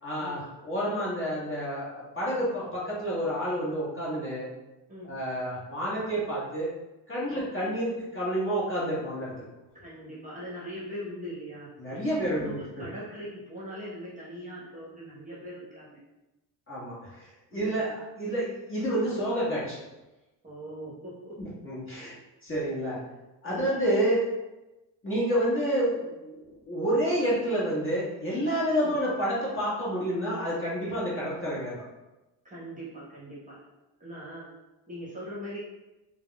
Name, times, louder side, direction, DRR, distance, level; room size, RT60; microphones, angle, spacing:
voice 1, 0.0-4.5 5.0-6.7 7.1-9.3 11.8-12.5 16.7-19.8 21.4-22.1 22.4-23.0 23.4-24.2 25.0-31.8, equal, 25° left, -7 dB, 1.3 m, -29 dB
voice 2, 9.7-11.7 12.0-16.0 17.5-17.9 20.4-21.4 23.4-23.8 28.8-28.9 32.4-33.6 34.0-34.5 34.9-35.6, equal, 15° right, -8 dB, 1.0 m, -41 dB
3.3 x 2.3 x 2.2 m, 1.0 s
supercardioid pair, 80°, 46 cm